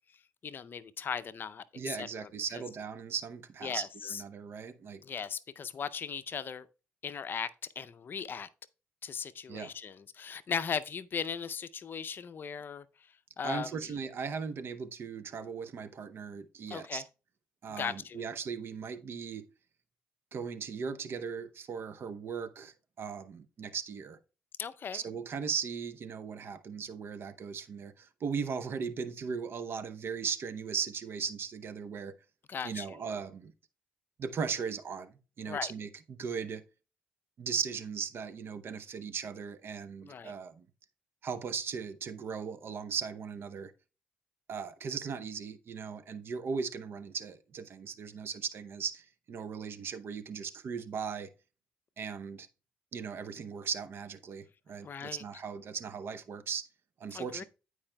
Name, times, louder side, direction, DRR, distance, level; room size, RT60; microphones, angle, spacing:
voice 1, 0.4-2.3 2.5-2.6 3.6-4.2 5.0-6.7 7.0-7.5 7.8-8.5 9.0-13.9 16.7-17.0 17.8-18.2 24.6-25.0 32.5-33.0 35.4-35.7 40.0-40.3 54.8-55.2 57.1-57.4, left 6 dB, 50° left, 0.5 m, -38 dB
voice 2, 1.8-5.0 9.5-9.7 13.4-17.0 17.6-19.4 20.3-24.2 24.9-32.1 32.6-33.5 34.2-36.6 37.4-40.7 41.2-43.7 44.5-51.3 52.0-52.5 52.9-56.6 57.0-57.4, right 6 dB, 60° right, 0.7 m, -38 dB
14.5 x 4.8 x 2.2 m
supercardioid pair, 65°, 5 cm